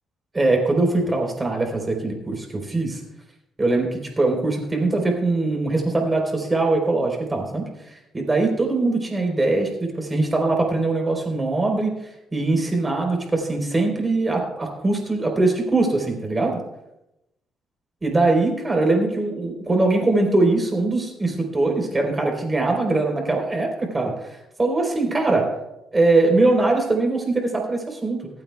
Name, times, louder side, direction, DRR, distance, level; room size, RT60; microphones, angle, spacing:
voice 1, 0.3-3.0 3.6-11.9 12.3-16.6 18.0-25.5 25.9-28.3, right 2 dB, 25° right, 2 dB, 3.8 m, -22 dB
26.0 x 8.9 x 2.3 m, 0.90 s
cardioid pair, 90°, 0 cm